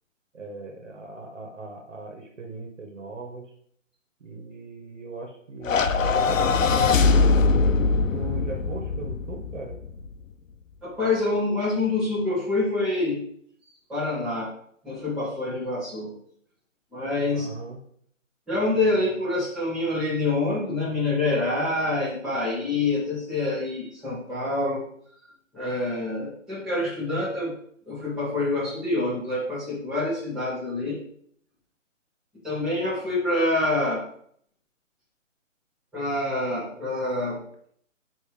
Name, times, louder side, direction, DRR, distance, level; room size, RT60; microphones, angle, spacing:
voice 1, 0.3-3.5 4.2-7.5 8.1-9.8 17.3-17.8, right 2 dB, 70° right, 2 dB, 1.6 m, -39 dB
sound 1, 5.6-10.1, left 4 dB, 75° left, 0.7 m, -22 dB
voice 2, 10.8-13.3 13.9-14.5 14.8-16.1 16.9-17.5 18.5-24.9 25.5-27.5 27.9-31.0 32.4-34.0 35.9-37.4, left 2 dB, ahead, -11 dB, 1.5 m, -26 dB
8.9 x 3.2 x 3.4 m, 0.65 s
figure-of-eight pair, 150°, 39 cm